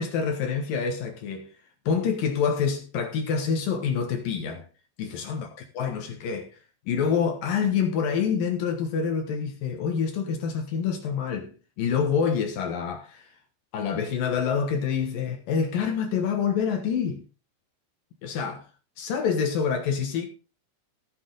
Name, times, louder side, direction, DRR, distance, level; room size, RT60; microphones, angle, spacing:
voice 1, 0.0-1.5 1.9-4.6 5.0-6.5 6.9-13.3 13.7-17.2 18.2-18.6 19.0-20.3, left 6 dB, 70° left, 2.2 m, -27 dB
13.5 x 7.8 x 3.9 m
omnidirectional pair, 5.6 m